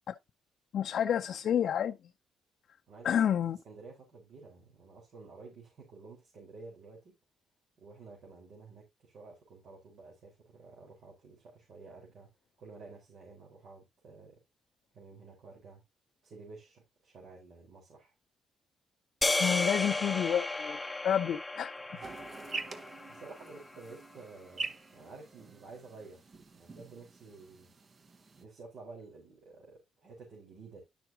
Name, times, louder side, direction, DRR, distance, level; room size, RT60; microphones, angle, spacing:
voice 1, 0.7-2.0 3.0-3.6 19.4-21.7, left 9 dB, 65° left, 0.5 m, -29 dB
voice 2, 2.9-3.3 3.6-7.1 7.8-12.3 12.6-14.4 14.9-15.8 16.2-18.1 21.9-26.3 26.6-27.7 28.4-30.8, right 3 dB, 65° right, 4.2 m, -52 dB
sound 1, 19.2-23.6, left 2 dB, 15° left, 0.7 m, -34 dB
sound 2, 22.0-28.4, right 4 dB, 40° right, 1.1 m, -45 dB
11.0 x 6.1 x 2.8 m
cardioid pair, 90°, 0 cm